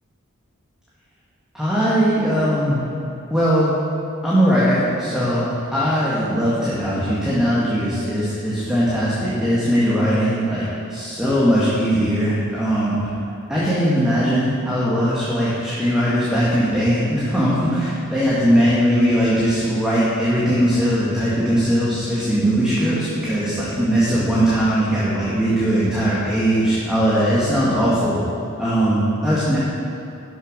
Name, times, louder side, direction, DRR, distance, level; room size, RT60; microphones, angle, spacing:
voice 1, 1.5-2.8 3.3-3.7 4.2-5.5 5.7-13.0 13.5-28.2 28.6-29.6, equal, 5° right, -9 dB, 1.6 m, -19 dB
11.5 x 6.6 x 5.2 m, 2.7 s
head